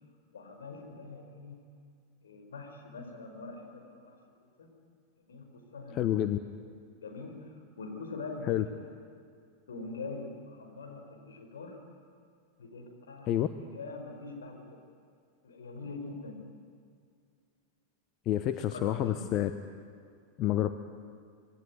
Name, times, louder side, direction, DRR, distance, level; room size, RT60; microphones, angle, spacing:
voice 1, 0.3-1.6 2.2-4.1 4.6-4.7 5.3-6.2 7.0-7.4 7.8-8.7 9.7-11.8 12.6-13.3 13.7-14.8 15.4-16.4 18.7-19.2, left 3 dB, 65° left, 2 dB, 5.2 m, -43 dB
voice 2, 5.9-6.4 8.5-8.6 13.3-13.5 18.3-19.5 20.4-20.7, left 12 dB, 35° left, 9 dB, 1.0 m, -28 dB
26.5 x 21.0 x 9.5 m, 2.3 s
figure-of-eight pair, 90°, 0 cm